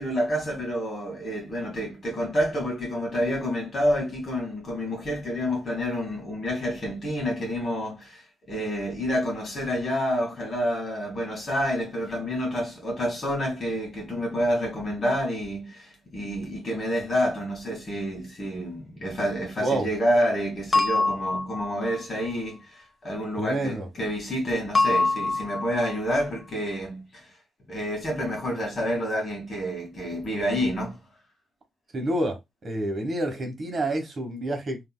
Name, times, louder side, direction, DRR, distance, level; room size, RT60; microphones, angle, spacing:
voice 1, 0.0-8.2 8.5-27.3 27.7-31.0, equal, 40° left, 1.9 m, -28 dB
sound 1, 20.7-22.0 24.7-26.0, left 3 dB, 25° left, 0.8 m, -24 dB
voice 2, 23.4-23.9 31.9-34.8, right 1 dB, 40° right, 1.2 m, -28 dB
3.5 x 2.7 x 2.2 m
cardioid pair, 90°, 0 cm